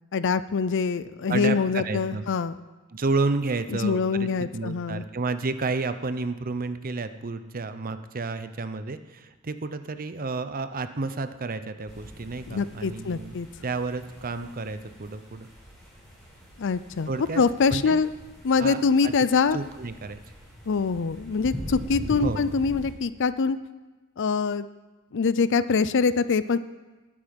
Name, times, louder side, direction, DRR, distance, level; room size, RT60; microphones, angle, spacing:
voice 1, 0.1-2.5 3.7-5.0 12.5-13.5 16.6-17.1 17.3-18.1 18.4-19.6 20.7-23.6 24.2-24.7 25.1-26.6, left 5 dB, 55° left, 15 dB, 0.5 m, -24 dB
voice 2, 1.3-2.2 2.9-13.4 13.6-15.5 17.1-17.4 17.7-18.0 18.6-19.1 19.5-20.2 22.2-22.4, right 3 dB, 40° right, 11 dB, 0.7 m, -31 dB
sound 1, 11.9-22.9, equal, 5° left, 5.6 m, -42 dB
19.5 x 8.8 x 5.3 m, 1.2 s
head